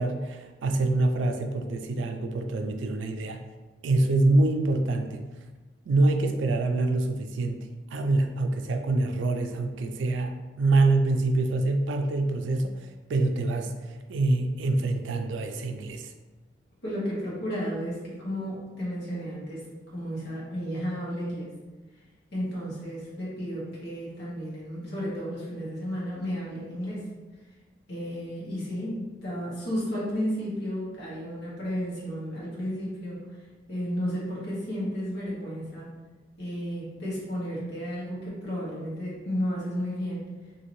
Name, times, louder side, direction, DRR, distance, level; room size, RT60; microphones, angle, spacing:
voice 1, 0.0-3.4 3.8-5.2 5.9-7.6 7.9-12.8 13.1-13.7 14.1-16.1, right 2 dB, 90° right, 6 dB, 0.3 m, -25 dB
voice 2, 16.8-19.7 19.9-21.5 22.3-27.1 27.9-33.2 33.7-35.9 36.4-40.3, equal, 65° left, -7 dB, 1.2 m, -33 dB
2.7 x 2.7 x 3.0 m, 1.2 s
head